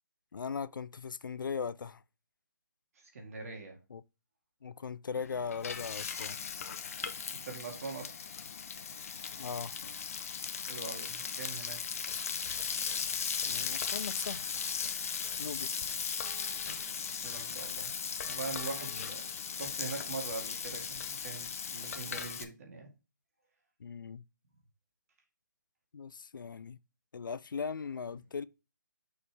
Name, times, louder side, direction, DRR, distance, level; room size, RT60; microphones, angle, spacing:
voice 1, 0.3-2.0 3.9-4.0 4.6-6.4 9.4-9.8 13.4-14.5 15.4-15.7 18.9-19.1 23.8-24.2 25.9-26.8 27.1-28.4, left 6 dB, 80° left, 0.4 m, -39 dB
voice 2, 3.0-3.8 7.4-8.1 10.7-11.8 16.6-17.9 18.2-22.9, right 4 dB, 45° right, 2.2 m, -43 dB
Frying (food), 5.2-22.4, left 6 dB, 45° left, 0.8 m, -37 dB
6.6 x 4.2 x 3.4 m
hypercardioid pair, 165°, 11 cm